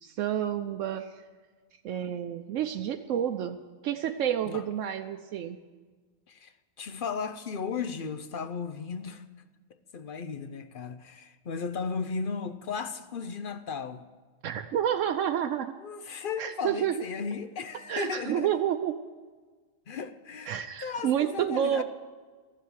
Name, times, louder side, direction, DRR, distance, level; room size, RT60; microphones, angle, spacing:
voice 1, 0.0-1.2 1.8-3.6 3.8-5.6 14.4-15.7 16.4-17.0 17.9-19.0 20.4-21.8, right 10 dB, 80° right, 1.0 m, -29 dB
voice 2, 6.3-9.2 9.9-14.0 15.8-18.5 19.9-20.6 20.8-21.8, left 5 dB, 50° left, 0.7 m, -35 dB
14.0 x 7.5 x 9.8 m
omnidirectional pair, 1.3 m